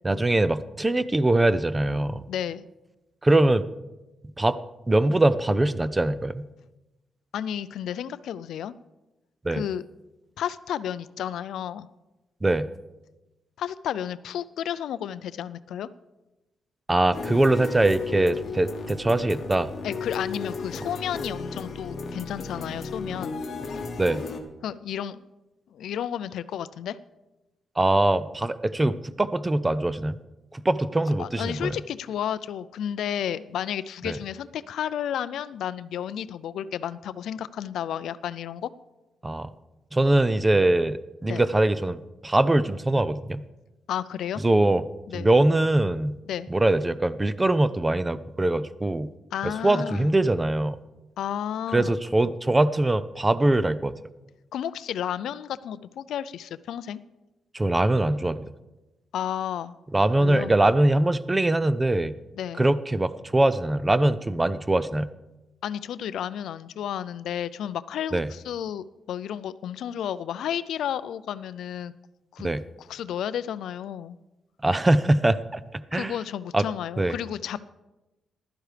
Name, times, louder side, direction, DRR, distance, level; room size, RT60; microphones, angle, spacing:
voice 1, 0.0-2.2 3.2-3.7 4.4-4.6 4.9-6.5 9.4-9.6 12.4-12.7 16.9-19.7 24.0-24.2 27.8-30.2 30.5-31.7 34.0-34.2 39.2-39.5 39.9-43.4 44.4-44.8 45.1-46.2 46.5-49.1 49.4-50.8 51.7-53.9 57.5-58.5 59.9-62.1 62.6-65.1 68.1-68.3 72.4-72.6 74.6-76.1 76.5-76.6 77.0-77.1, right 2 dB, 15° right, 15 dB, 0.4 m, -22 dB
voice 2, 2.3-2.6 7.3-8.7 9.5-9.9 10.4-11.9 13.6-15.9 19.8-23.4 24.6-25.2 25.7-27.0 31.2-38.7 41.3-41.4 43.9-44.4 45.1-45.3 46.3-46.5 49.3-50.1 51.2-51.9 54.5-57.0 59.1-59.8 60.2-60.5 62.3-62.7 65.6-71.9 72.3-72.5 72.8-74.2 75.9-77.7, left 10 dB, 90° left, 16 dB, 0.4 m, -32 dB
sound 1, 17.1-24.4, left 4 dB, 45° left, 1.0 m, -34 dB
15.0 x 12.0 x 3.3 m, 1.0 s
wide cardioid pair, 155°, 0 cm